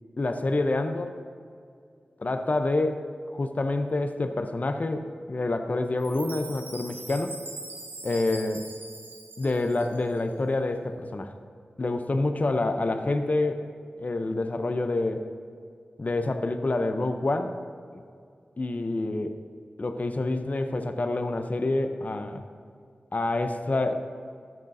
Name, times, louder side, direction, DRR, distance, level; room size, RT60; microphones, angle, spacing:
voice 1, 0.2-1.1 2.2-3.0 3.3-7.4 8.0-8.6 9.4-11.3 11.8-13.6 14.0-15.2 16.0-17.5 17.9-18.0 18.6-19.3 19.8-22.4 23.1-23.9, left 2 dB, 45° left, 7 dB, 0.6 m, -27 dB
Chime, 6.0-10.2, right 2 dB, 75° right, 1.0 m, -42 dB
13.0 x 6.1 x 2.7 m, 2.3 s
cardioid pair, 40°, 4 cm